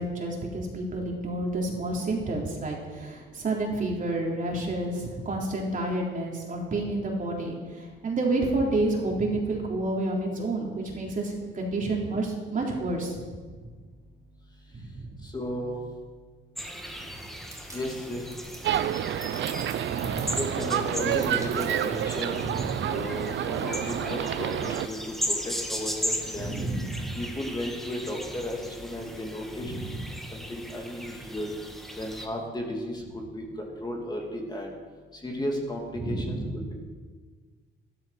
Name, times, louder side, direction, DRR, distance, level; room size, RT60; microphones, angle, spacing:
voice 1, 0.0-13.3 14.9-15.1 19.8-20.4 22.3-22.9 26.3-27.2 29.7-30.1 36.0-36.6, right 2 dB, 40° right, -2 dB, 3.6 m, -30 dB
voice 2, 15.2-15.8 17.7-18.3 20.4-22.4 22.9-25.0 25.3-26.6 27.2-29.7 30.3-31.5 32.0-33.0 33.3-34.7 35.2-36.4 36.7-36.8, left 1 dB, 20° left, 0 dB, 2.7 m, -34 dB
sound 1, 16.6-32.3, equal, ahead, 1.6 m, -37 dB
sound 2, 17.5-22.7, right 2 dB, 15° right, 2.9 m, -47 dB
sound 3, 18.6-24.9, right 10 dB, 65° right, 0.7 m, -29 dB
12.5 x 12.5 x 5.9 m, 1.5 s
cardioid pair, 90°, 20 cm